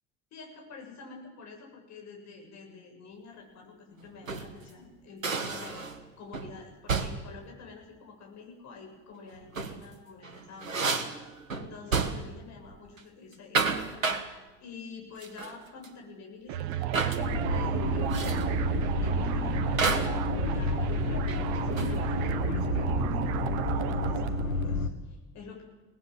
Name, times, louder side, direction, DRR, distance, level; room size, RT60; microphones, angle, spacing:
voice 1, 0.3-18.7 19.0-25.6, left 4 dB, 45° left, 1 dB, 7.2 m, -48 dB
sound 1, 4.0-4.6 5.2-6.1 6.3-6.5 6.9-7.3 9.3-9.9 10.2-12.4 12.7-13.0 13.3-14.3 15.2-15.6 15.8-15.9 16.9-17.2 18.1-18.5 19.8-20.2 21.3-22.1, right 4 dB, 80° right, 1.4 m, -31 dB
sound 2, 16.5-24.7, right 10 dB, 55° right, 1.4 m, -32 dB
sound 3, 17.2-24.9, left 3 dB, 85° left, 1.2 m, -31 dB
23.5 x 19.0 x 7.7 m, 1.2 s
figure-of-eight pair, 65°, 39 cm